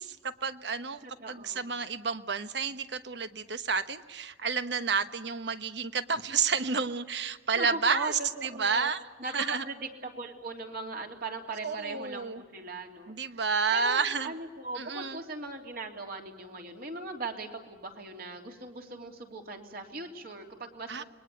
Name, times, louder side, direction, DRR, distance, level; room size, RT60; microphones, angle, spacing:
voice 1, 0.0-9.0 9.3-9.6 11.6-12.4 13.1-14.3 14.7-15.2 20.9-21.0, right 5 dB, 70° right, 11 dB, 1.2 m, -30 dB
voice 2, 1.0-1.7 7.5-8.9 9.2-13.4 13.7-21.0, right 3 dB, 50° right, 3 dB, 3.2 m, -39 dB
28.5 x 21.5 x 8.5 m, 1.3 s
head